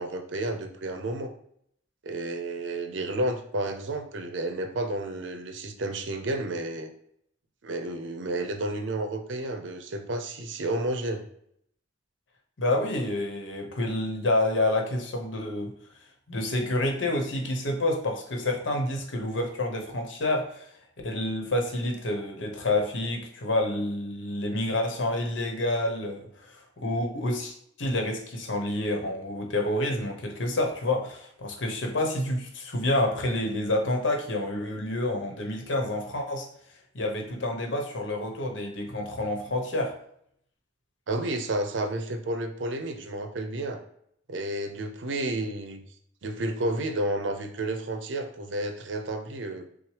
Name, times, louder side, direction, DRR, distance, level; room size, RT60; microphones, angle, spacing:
voice 1, 0.0-1.3 2.0-6.9 7.6-11.2 41.1-43.8 44.3-45.8 46.2-49.6, right 1 dB, 75° right, 6 dB, 0.6 m, -31 dB
voice 2, 12.6-15.7 16.3-20.7 21.0-36.5 36.9-39.9, left 1 dB, 85° left, 2 dB, 0.8 m, -28 dB
5.9 x 2.0 x 3.2 m, 0.69 s
head